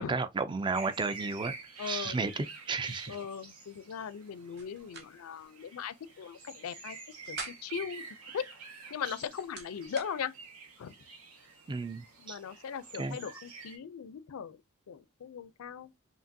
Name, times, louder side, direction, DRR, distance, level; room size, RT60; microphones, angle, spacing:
voice 1, 0.0-1.6 1.9-3.2 11.7-12.4 13.0-13.2, right 4 dB, 20° right, 0.3 m, -33 dB
sound 1, 0.7-13.8, right 5 dB, 85° right, 1.2 m, -48 dB
voice 2, 1.8-2.2 3.1-7.0 7.3-7.4 7.6-8.0 8.3-8.4 8.9-10.3 10.8-10.9 12.2-14.6 14.9-15.9, left 7 dB, 75° left, 0.4 m, -39 dB
sound 2, 4.6-5.1 5.4-5.5 7.0-7.8 9.0-10.1, right 3 dB, 50° right, 1.0 m, -45 dB
5.1 x 2.8 x 2.6 m
head